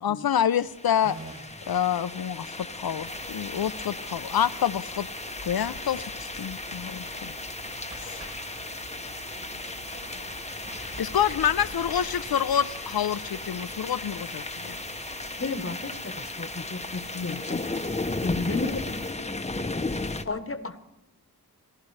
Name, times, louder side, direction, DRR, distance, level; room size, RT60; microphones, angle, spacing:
voice 1, 0.0-1.2 1.7-5.1 5.4-7.3 8.0-8.2 10.8-14.8 17.1-17.4, left 9 dB, 70° left, 16 dB, 0.6 m, -27 dB
sound 1, 0.6-20.2, left 2 dB, 15° left, 0.7 m, -35 dB
sound 2, 1.0-15.3, right 2 dB, 35° right, 2.3 m, -50 dB
sound 3, 3.0-19.1, right 3 dB, 55° right, 1.2 m, -47 dB
voice 2, 8.4-11.2 17.4-17.5 18.3-18.8 19.2-20.6, right 3 dB, 75° right, -3 dB, 7.2 m, -50 dB
voice 3, 15.4-17.6 18.2-18.8 20.2-20.8, left 3 dB, 35° left, 11 dB, 1.1 m, -33 dB
28.5 x 11.5 x 3.2 m, 0.93 s
wide cardioid pair, 55°, 38 cm